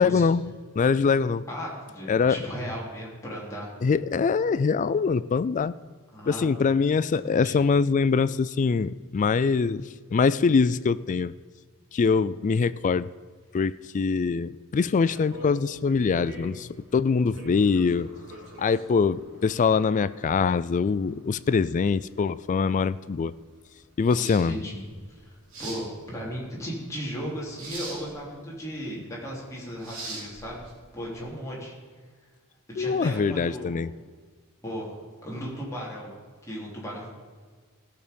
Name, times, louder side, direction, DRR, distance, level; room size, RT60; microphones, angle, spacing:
voice 1, 0.0-1.4 2.1-2.4 3.8-5.7 6.3-11.3 11.9-13.1 13.5-18.1 18.6-23.3 24.0-24.6 32.8-33.9, left 5 dB, 35° left, 17 dB, 0.3 m, -23 dB
voice 2, 1.5-3.7 6.1-6.5 7.2-7.5 24.2-24.8 25.1-25.3 25.6-30.6 30.9-31.7 32.7-33.9 34.6-36.1 36.4-37.1, equal, 15° left, -5 dB, 3.3 m, -36 dB
sound 1, 15.0-31.2, right 2 dB, 60° right, 3.5 m, -44 dB
16.5 x 6.6 x 5.3 m, 1.5 s
head